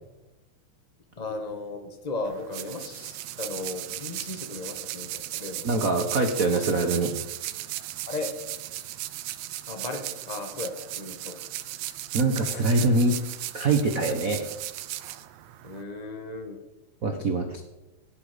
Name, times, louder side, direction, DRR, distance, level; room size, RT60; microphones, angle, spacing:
voice 1, 1.2-5.7 8.1-8.3 9.7-11.4 15.6-16.6, left 3 dB, 55° left, 4 dB, 0.4 m, -36 dB
sound 1, 2.2-15.8, right 14 dB, 80° right, 1.5 m, -36 dB
voice 2, 5.6-7.2 12.1-13.2 13.5-14.4 17.0-17.6, right 2 dB, 65° right, 4 dB, 0.8 m, -24 dB
16.5 x 10.5 x 5.1 m, 1.0 s
omnidirectional pair, 3.5 m